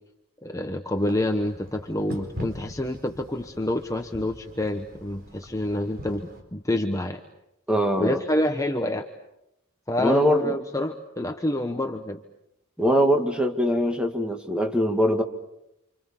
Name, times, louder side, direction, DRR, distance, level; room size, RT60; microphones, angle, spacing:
voice 1, 0.4-6.2 6.5-7.2 8.0-9.1 9.9-12.2, left 1 dB, 15° left, 4 dB, 1.2 m, -27 dB
sound 1, 1.0-6.4, left 1 dB, 45° right, 4.6 m, -42 dB
voice 2, 7.7-8.2 10.0-10.5 12.8-15.2, equal, 5° right, 4 dB, 2.3 m, -22 dB
29.5 x 26.5 x 7.3 m, 0.85 s
head